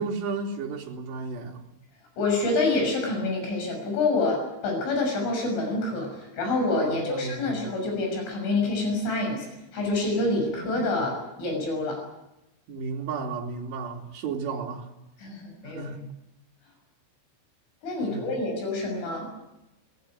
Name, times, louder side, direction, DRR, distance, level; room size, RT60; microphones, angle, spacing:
voice 1, 0.0-1.7 6.8-7.7 10.6-11.0 12.7-14.9 15.7-16.0 18.0-18.2, right 4 dB, 65° right, 5.0 m, -34 dB
voice 2, 2.2-9.5 9.7-12.0 15.2-15.9 17.8-19.3, left 2 dB, 85° left, 9.0 m, -27 dB
23.0 x 20.0 x 9.5 m
omnidirectional pair, 5.5 m